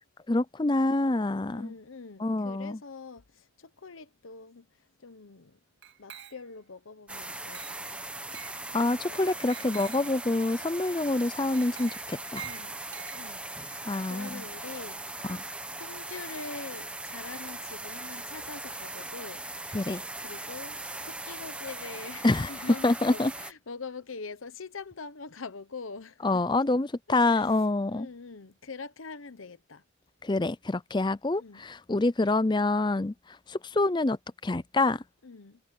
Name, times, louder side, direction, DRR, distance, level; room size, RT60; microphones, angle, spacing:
voice 1, 0.3-1.7 2.2-2.8 8.4-12.5 13.9-14.4 15.3-15.5 19.7-20.0 22.2-22.5 22.8-23.3 26.2-28.1 30.2-34.2 34.4-35.0, left 2 dB, 20° left, 0.5 m, -27 dB
voice 2, 1.5-4.7 5.0-5.6 6.0-7.8 8.1-8.2 9.0-9.3 9.6-9.8 12.4-12.7 13.1-15.3 15.8-19.4 20.2-20.8 21.0-26.4 27.3-27.6 27.8-29.8 31.4-31.6 35.2-35.6, left 4 dB, 85° left, 1.0 m, -44 dB
Glass, 5.8-6.7 7.5-7.9 8.3-8.6 9.5-10.1 11.5-13.6, right 9 dB, 65° right, 2.1 m, -46 dB
sound 1, 7.1-23.5, right 2 dB, 5° right, 1.1 m, -39 dB
head